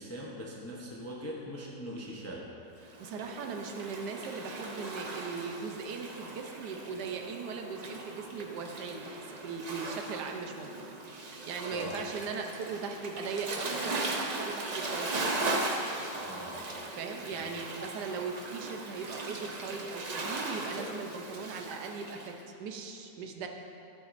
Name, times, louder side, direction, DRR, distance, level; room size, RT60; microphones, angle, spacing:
voice 1, 0.0-2.4 11.7-12.0 16.2-16.7 17.3-17.4, right 1 dB, 20° left, -4 dB, 0.4 m, -41 dB
voice 2, 2.8-10.7 11.1-15.5 17.0-23.5, right 5 dB, 90° right, 3 dB, 1.3 m, -39 dB
Waves surf, 2.9-22.3, right 2 dB, 65° right, 0.4 m, -38 dB
12.5 x 7.5 x 2.6 m, 2.7 s
omnidirectional pair, 1.7 m